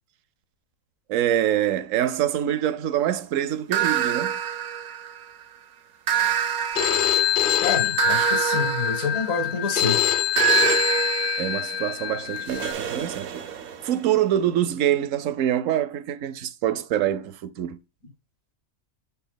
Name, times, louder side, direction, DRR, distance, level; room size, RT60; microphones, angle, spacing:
voice 1, 1.1-4.4 11.4-13.4 13.8-17.8, right 11 dB, 70° right, 1.0 m, -25 dB
sound 1, 3.7-5.4 6.1-9.8 10.4-14.1, right 10 dB, 85° right, 1.3 m, -27 dB
Telephone, 6.8-12.7, left 11 dB, 50° left, 0.7 m, -24 dB
voice 2, 7.6-10.0, left 5 dB, 70° left, 1.8 m, -27 dB
7.1 x 4.2 x 3.9 m
omnidirectional pair, 1.4 m